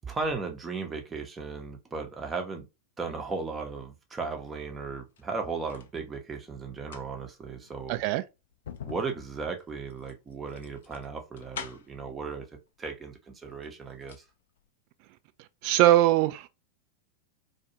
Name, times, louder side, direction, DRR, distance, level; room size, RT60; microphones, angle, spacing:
voice 1, 0.0-2.7 3.0-8.0 8.8-12.4 12.8-14.2, right 4 dB, 15° right, 0.7 m, -36 dB
sound 1, 5.0-5.9 6.7-12.1 13.0-13.1 13.5-14.3 14.6-14.7, left 7 dB, 60° left, 0.4 m, -45 dB
voice 2, 7.9-8.2 15.6-16.5, right 14 dB, 45° right, 0.3 m, -21 dB
2.4 x 2.3 x 2.8 m
figure-of-eight pair, 90°, 0 cm